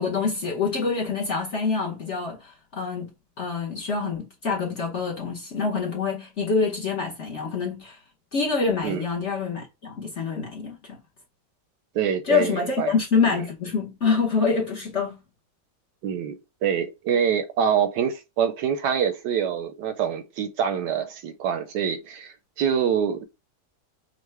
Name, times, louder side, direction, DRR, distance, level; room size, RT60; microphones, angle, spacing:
voice 1, 0.0-3.1 3.4-8.0 8.3-11.0 12.2-15.2, left 5 dB, 50° left, 1.0 m, -26 dB
voice 2, 11.9-12.9 16.0-23.2, right 8 dB, 70° right, 1.1 m, -25 dB
5.5 x 2.2 x 3.2 m
omnidirectional pair, 2.1 m